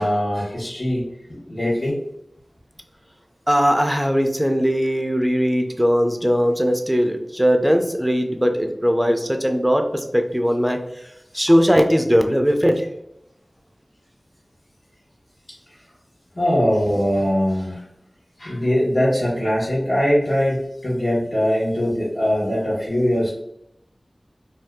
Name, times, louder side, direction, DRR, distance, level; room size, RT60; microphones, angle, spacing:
voice 1, 0.0-2.0 16.3-17.8 18.4-23.3, equal, 55° left, -8 dB, 1.1 m, -21 dB
voice 2, 3.5-10.8 11.3-12.9, equal, 5° right, 5 dB, 0.5 m, -19 dB
2.7 x 2.3 x 3.4 m, 0.78 s
wide cardioid pair, 50°, 0 cm